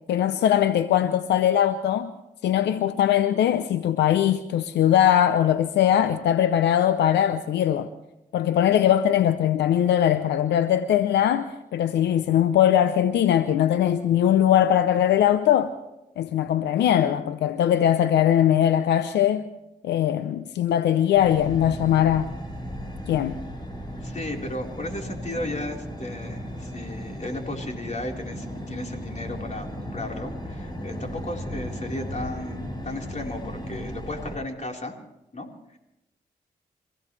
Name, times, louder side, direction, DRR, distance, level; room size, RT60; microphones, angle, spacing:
voice 1, 0.1-2.1 2.4-7.9 8.3-15.7 16.2-19.5 19.8-22.3 23.1-23.4, left 10 dB, 85° left, 12 dB, 0.7 m, -21 dB
sound 1, 21.1-34.4, equal, 25° left, 7.7 m, -36 dB
voice 2, 23.9-34.9 35.3-35.8, left 1 dB, 40° left, 1 dB, 4.2 m, -35 dB
27.5 x 16.0 x 3.3 m, 0.91 s
supercardioid pair, 40°, 17 cm